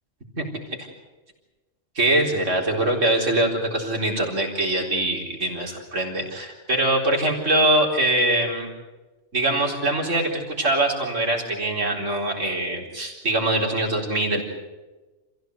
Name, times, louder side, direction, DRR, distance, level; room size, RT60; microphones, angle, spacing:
voice 1, 2.0-8.7 9.3-14.4, right 1 dB, 85° right, 0 dB, 4.6 m, -23 dB
27.5 x 16.0 x 8.1 m, 1.2 s
omnidirectional pair, 1.3 m